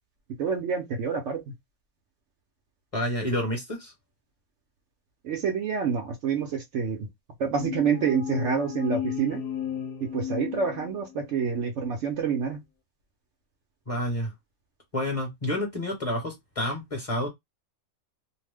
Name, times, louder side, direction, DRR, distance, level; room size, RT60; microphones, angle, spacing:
voice 1, 0.4-1.5 5.2-7.1 7.4-9.4 10.0-12.6, right 6 dB, 65° right, 0.9 m, -27 dB
voice 2, 2.9-3.9 13.9-14.3 14.9-17.3, left 1 dB, 25° left, 0.9 m, -29 dB
sound 1, 7.5-11.3, left 9 dB, 80° left, 1.0 m, -34 dB
2.6 x 2.1 x 3.3 m
omnidirectional pair, 1.5 m